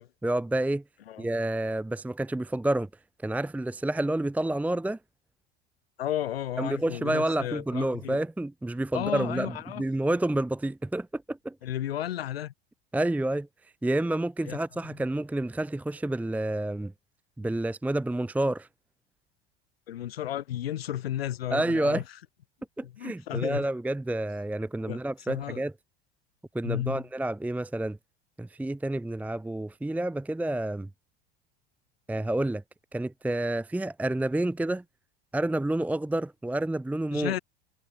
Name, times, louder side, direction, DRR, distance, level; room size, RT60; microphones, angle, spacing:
voice 1, 0.2-0.8 1.2-2.9 3.2-5.0 6.6-11.5 12.9-13.5 13.8-16.9 17.4-18.7 21.5-22.0 22.8-25.7 26.5-28.0 28.4-30.9 32.1-32.6 32.9-34.8 35.3-37.3, right 1 dB, 5° right, 0.8 m, -29 dB
voice 2, 6.0-8.2 8.9-9.8 11.6-12.5 14.4-14.6 19.9-22.0 22.8-23.7 24.9-25.0 25.3-25.6 26.6-27.0 37.1-37.4, left 12 dB, 80° left, 1.5 m, -33 dB
hypercardioid pair, 80°, 30 cm